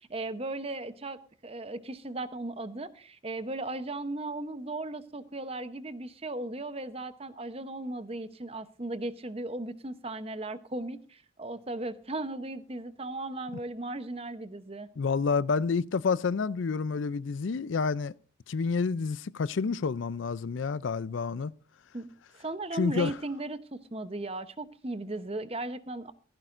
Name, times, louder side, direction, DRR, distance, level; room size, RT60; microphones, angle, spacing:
voice 1, 0.0-14.9 21.9-22.1 22.4-26.1, right 2 dB, 30° right, 0.8 m, -37 dB
voice 2, 15.0-18.1 18.5-21.5 22.7-23.1, left 5 dB, 65° left, 0.4 m, -29 dB
15.5 x 15.0 x 2.5 m
head